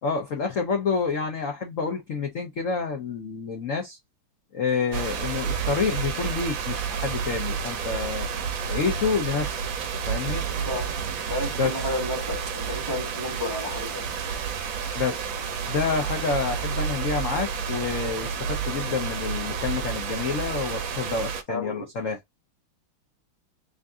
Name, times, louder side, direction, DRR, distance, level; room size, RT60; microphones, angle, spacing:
voice 1, 0.0-4.0 4.5-8.3 8.7-9.6 10.1-10.4 11.6-11.8 14.9-15.3 15.7-22.2, left 5 dB, 60° left, 0.8 m, -28 dB
sound 1, 4.9-21.4, right 6 dB, 70° right, 1.4 m, -30 dB
voice 2, 11.3-14.1 21.5-21.9, left 1 dB, 15° right, 0.8 m, -32 dB
3.9 x 2.6 x 3.5 m
omnidirectional pair, 2.4 m